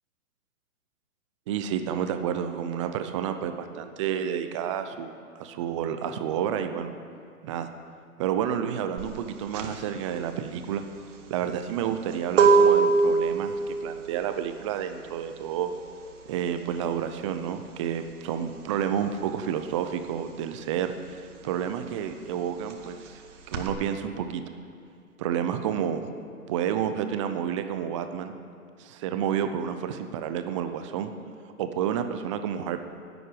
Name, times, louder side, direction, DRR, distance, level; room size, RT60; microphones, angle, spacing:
voice 1, 1.5-6.9 7.4-7.7 8.2-10.8 11.3-15.7 16.3-23.2 23.5-24.4 25.2-26.0 26.5-28.3 28.8-31.1 31.6-32.8, right 9 dB, 20° right, 8 dB, 0.6 m, -30 dB
sound 1, 9.0-19.2 19.5-23.7, right 4 dB, 55° right, 1.9 m, -25 dB
11.0 x 8.0 x 9.6 m, 2.3 s
hypercardioid pair, 135°, 45 cm